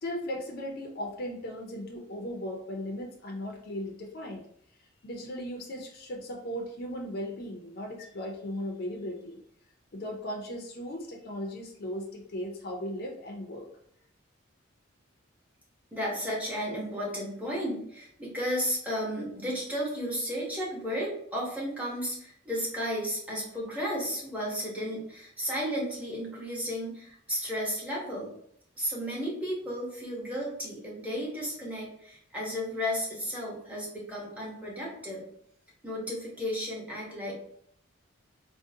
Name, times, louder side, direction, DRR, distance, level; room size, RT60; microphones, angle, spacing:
voice 1, 0.0-4.4 5.0-9.4 9.9-13.7, equal, 50° left, 1 dB, 0.5 m, -37 dB
voice 2, 15.9-28.3 28.8-35.2 35.8-37.3, equal, 5° right, -5 dB, 0.8 m, -33 dB
3.6 x 2.0 x 2.6 m, 0.68 s
head